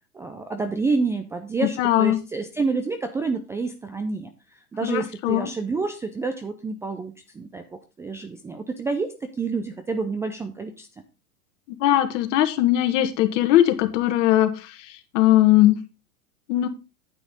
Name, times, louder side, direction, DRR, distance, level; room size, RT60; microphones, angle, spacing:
voice 1, 0.1-7.6 8.0-10.9, right 4 dB, 5° right, 6 dB, 0.4 m, -28 dB
voice 2, 1.8-2.2 4.8-5.5 11.8-14.7 15.1-15.8 16.5-16.7, left 13 dB, 50° left, 9 dB, 1.7 m, -19 dB
9.3 x 8.5 x 3.8 m, 0.29 s
hypercardioid pair, 105°, 46 cm